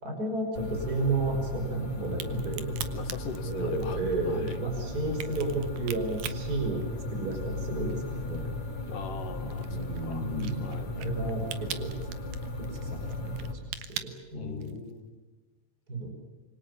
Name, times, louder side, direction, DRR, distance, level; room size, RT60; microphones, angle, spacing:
voice 1, 0.0-2.7 3.4-8.5 9.4-12.0 12.6-14.8 15.9-16.1, right 2 dB, 25° right, 4 dB, 5.8 m, -33 dB
sound 1, 0.5-13.5, left 2 dB, 60° left, 5.4 m, -36 dB
Crack, 2.1-7.6 7.9-14.9, right 10 dB, 80° right, 2.9 m, -42 dB
voice 2, 2.9-4.6 8.9-10.3 10.6-11.1 14.3-15.1, left 6 dB, 80° left, 7 dB, 3.5 m, -41 dB
26.5 x 24.5 x 7.1 m, 1.2 s
omnidirectional pair, 3.7 m